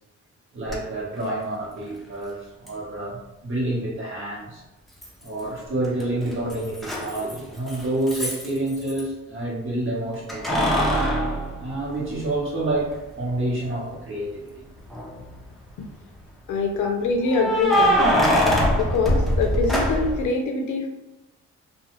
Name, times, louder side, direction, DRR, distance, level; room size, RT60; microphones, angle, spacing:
voice 1, 0.5-4.6 5.2-11.0 11.6-14.6, right 1 dB, 45° right, -4 dB, 1.1 m, -28 dB
Keys jangling, 0.7-0.8 2.7-2.8 5.0-5.6 5.8-9.0 10.3-12.4 12.9-13.0 14.8-15.3 17.3-20.3, equal, ahead, 0.6 m, -23 dB
voice 2, 16.5-18.1 18.7-20.9, left 4 dB, 80° left, 3 dB, 0.6 m, -24 dB
2.3 x 2.3 x 3.0 m, 0.99 s
cardioid pair, 90°, 30 cm